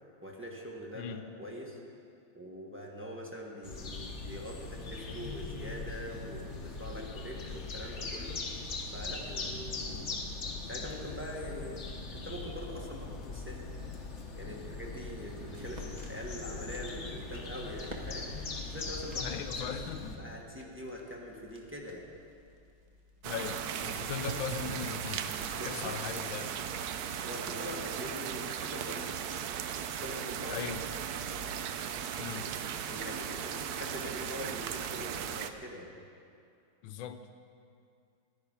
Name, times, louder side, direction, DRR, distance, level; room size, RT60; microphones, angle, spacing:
voice 1, 0.2-1.8 2.3-8.4 8.9-10.0 10.6-11.8 12.1-13.6 14.4-18.3 18.7-19.8 20.2-22.0 25.5-26.2 27.2-29.2 29.9-30.6 32.9-35.9, equal, 5° right, -3 dB, 1.3 m, -43 dB
voice 2, 0.9-1.3 19.2-20.3 23.2-26.5 30.5-30.9 32.2-32.6 36.8-37.3, left 8 dB, 75° left, 9 dB, 1.5 m, -39 dB
sound 1, 3.6-20.2, left 3 dB, 40° left, 1.3 m, -40 dB
sound 2, 15.0-26.3, equal, 25° right, 1.2 m, -55 dB
sound 3, 23.2-35.5, right 8 dB, 75° right, 0.9 m, -37 dB
15.0 x 10.5 x 5.5 m, 2.4 s
omnidirectional pair, 2.2 m